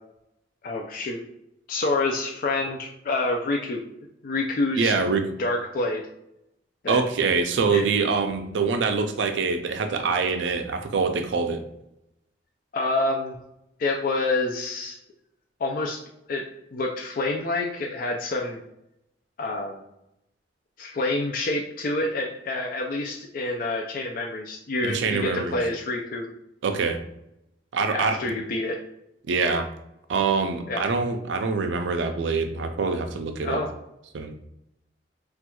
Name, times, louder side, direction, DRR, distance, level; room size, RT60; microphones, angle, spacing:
voice 1, 0.6-1.2 1.7-3.8 4.2-5.0 5.4-6.0 6.8-7.0 7.7-7.8 12.7-13.4 13.8-15.0 15.6-16.0 16.3-16.4 16.7-18.6 19.4-19.8 20.8-26.3 27.9-28.8 30.7-30.8 33.4-33.7, left 2 dB, 50° left, 1 dB, 0.4 m, -27 dB
voice 2, 4.8-5.3 6.9-11.6 24.8-25.6 26.6-27.0 27.7-28.4 29.3-29.7 30.1-33.6 34.1-34.3, right 4 dB, 85° right, 6 dB, 0.4 m, -25 dB
4.3 x 2.4 x 2.3 m, 0.84 s
head